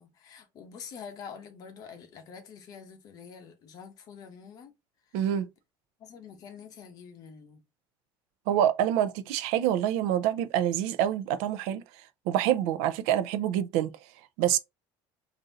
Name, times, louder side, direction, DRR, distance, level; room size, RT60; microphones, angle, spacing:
voice 1, 0.0-4.7 5.1-5.2 6.0-7.6, left 6 dB, 40° left, 0.9 m, -46 dB
voice 2, 5.1-5.5 8.5-11.8 12.3-13.9 14.4-14.6, right 11 dB, 75° right, 0.5 m, -26 dB
3.9 x 2.6 x 3.9 m
cardioid pair, 175°, 10 cm